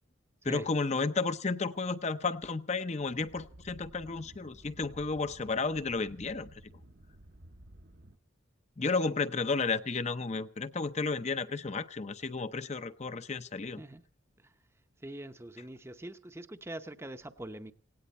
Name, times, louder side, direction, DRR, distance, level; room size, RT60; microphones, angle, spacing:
voice 1, 0.4-6.7 8.8-13.8, left 4 dB, 35° left, 11 dB, 0.7 m, -32 dB
sound 1, 3.0-8.2, right 1 dB, 55° right, 0.9 m, -54 dB
voice 2, 15.0-17.7, right 1 dB, 15° right, 9 dB, 0.7 m, -43 dB
18.5 x 17.5 x 4.3 m, 0.43 s
head